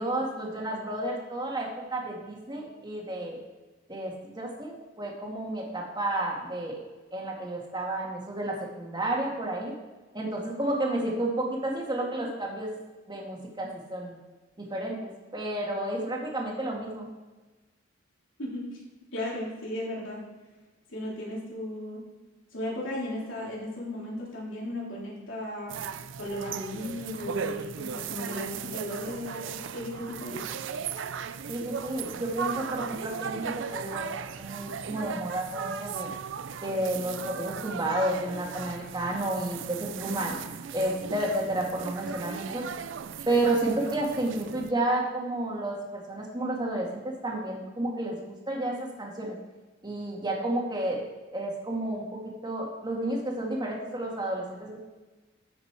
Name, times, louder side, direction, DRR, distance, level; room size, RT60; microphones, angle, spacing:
voice 1, 0.0-3.4 3.9-6.8 7.1-9.8 10.1-12.7 13.1-14.2 14.6-17.1 31.5-36.1 36.6-40.4 40.7-42.6 43.3-49.4 49.8-51.0 51.3-54.8, right 1 dB, 25° right, -1 dB, 1.9 m, -31 dB
voice 2, 18.4-18.8 19.1-20.2 20.9-22.0 22.5-25.7 26.2-30.4, left 1 dB, 75° left, -4 dB, 3.3 m, -35 dB
sound 1, 25.7-44.7, right 7 dB, 70° right, 0.5 m, -37 dB
13.0 x 5.7 x 4.7 m, 1.2 s
head